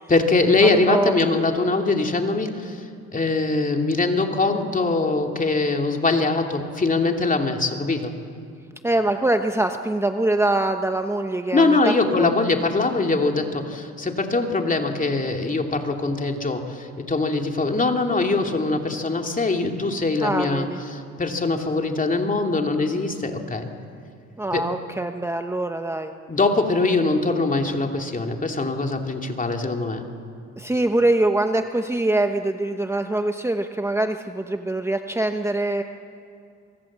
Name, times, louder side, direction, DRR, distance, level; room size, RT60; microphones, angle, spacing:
voice 1, 0.1-2.9 3.1-8.1 11.5-23.7 24.5-24.6 26.3-30.0, left 3 dB, 25° left, 3 dB, 2.8 m, -22 dB
voice 2, 8.8-12.3 20.2-20.8 24.4-26.1 30.6-35.8, right 2 dB, 10° right, 6 dB, 1.0 m, -23 dB
24.0 x 24.0 x 7.5 m, 2.5 s
cardioid pair, 90°, 30 cm